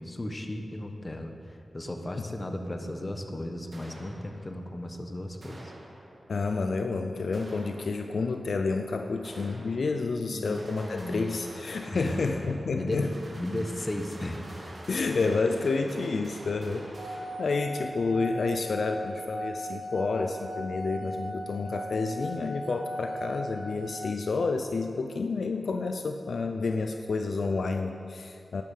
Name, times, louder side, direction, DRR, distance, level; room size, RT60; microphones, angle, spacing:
voice 1, 0.0-5.7 10.2-11.2 11.9-12.2 12.7-14.8, left 1 dB, 30° left, 4 dB, 1.3 m, -35 dB
sound 1, 3.7-4.7 5.4-6.4 7.3-8.3 9.2-10.2 10.4-18.0, right 1 dB, 45° right, 2.7 m, -47 dB
voice 2, 6.3-13.1 14.9-17.1 17.4-28.6, left 4 dB, 70° left, 6 dB, 0.6 m, -29 dB
sound 2, 17.0-24.0, equal, 70° right, 1.9 m, -38 dB
11.5 x 11.0 x 6.5 m, 2.5 s
wide cardioid pair, 85°, 0 cm